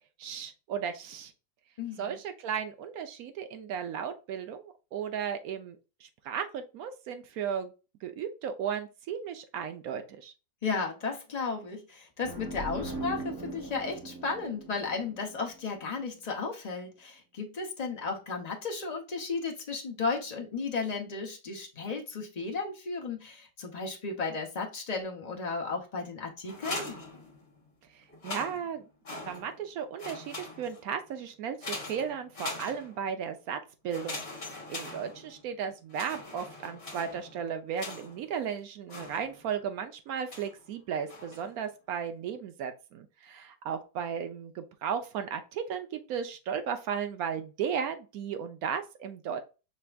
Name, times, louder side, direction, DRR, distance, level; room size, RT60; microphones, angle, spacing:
voice 1, 0.2-1.3 2.0-7.7 8.0-10.3 27.9-28.9 29.2-49.4, right 7 dB, 65° right, 1.0 m, -35 dB
voice 2, 1.8-2.2 10.6-27.0, left 4 dB, 60° left, 0.4 m, -34 dB
sound 1, 12.2-15.9, right 2 dB, 15° right, 1.6 m, -40 dB
sound 2, 26.4-27.7 28.1-29.7 30.0-30.9 31.6-33.2 33.9-35.5 35.9-38.3 38.9-39.6 40.3-40.6 41.1-41.6, left 2 dB, 35° left, 1.7 m, -42 dB
5.9 x 3.3 x 2.3 m
omnidirectional pair, 1.9 m